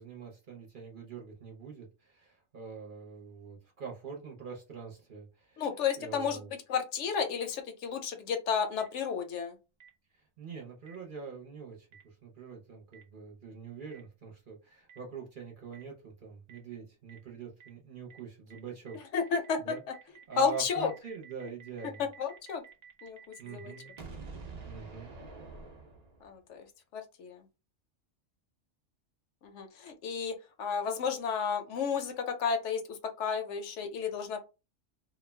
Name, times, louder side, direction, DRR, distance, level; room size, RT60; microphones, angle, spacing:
voice 1, 0.0-5.6 6.0-6.5 10.4-19.0 19.6-19.8 20.3-22.1 23.4-23.9 24.6-25.1, right 5 dB, 50° right, 0.7 m, -44 dB
voice 2, 5.6-6.4 6.7-9.6 19.1-19.6 20.4-20.9 22.0-22.6 23.0-23.2 23.4-23.7 26.2-26.7 26.9-27.4 29.4-34.4, left 6 dB, 70° left, 0.8 m, -32 dB
Boom, 8.8-8.9 9.8-9.9 10.9-11.0 11.9-12.0 12.9-13.0 13.9-14.0 14.9-15.0 15.7-15.8 16.5-16.6 17.1-17.2 17.6-17.7 18.1-18.2 18.5-18.6 18.9-26.4, right 4 dB, 65° right, 0.4 m, -49 dB
2.4 x 2.1 x 3.2 m
omnidirectional pair, 1.3 m